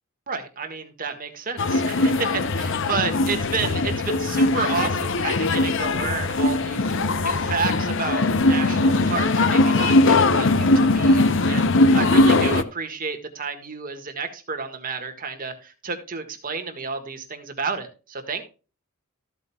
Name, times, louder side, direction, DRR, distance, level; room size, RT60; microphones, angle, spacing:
voice 1, 0.3-18.4, right 5 dB, 40° right, 6 dB, 1.6 m, -31 dB
sound 1, 1.6-12.6, left 2 dB, 60° left, 0.7 m, -20 dB
14.0 x 7.9 x 2.3 m, 0.33 s
head